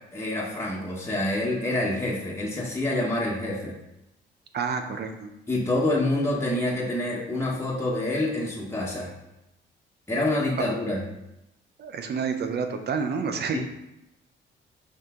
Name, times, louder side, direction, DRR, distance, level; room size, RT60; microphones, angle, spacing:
voice 1, 0.1-3.7 5.5-9.1 10.1-11.0 13.5-13.6, left 1 dB, 15° left, -4 dB, 1.4 m, -27 dB
voice 2, 4.5-5.3 10.6-10.7 11.8-13.6, right 5 dB, 55° right, 6 dB, 0.8 m, -29 dB
5.5 x 4.8 x 3.8 m, 0.89 s
cardioid pair, 90°, 20 cm